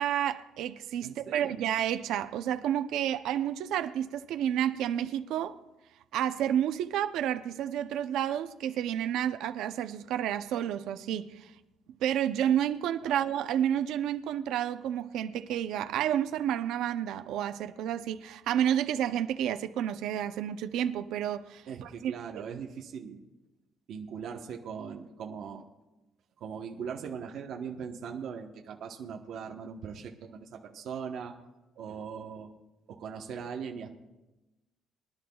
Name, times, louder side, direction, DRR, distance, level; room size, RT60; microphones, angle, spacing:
voice 1, 0.0-5.6 6.1-11.5 12.0-22.1, right 10 dB, 70° right, 0.6 m, -30 dB
voice 2, 1.0-1.6 13.0-13.2 21.7-23.2 23.9-25.6 26.4-31.3 31.8-32.5 32.9-33.9, right 6 dB, 55° right, 1.0 m, -40 dB
24.0 x 11.0 x 2.3 m
cardioid pair, 180°, 0 cm